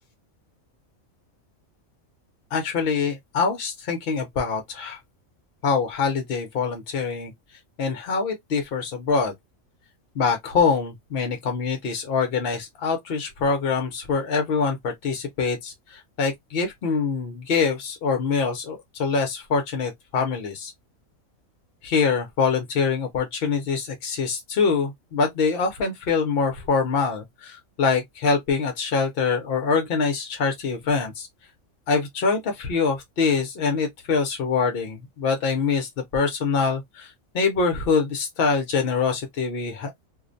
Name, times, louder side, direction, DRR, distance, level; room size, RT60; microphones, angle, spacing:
voice 1, 2.5-5.0 5.6-7.3 7.8-9.3 10.2-20.7 21.8-31.3 31.9-37.1 37.3-39.9, left 5 dB, 60° left, 0.6 m, -24 dB
2.4 x 2.0 x 2.4 m
omnidirectional pair, 1.4 m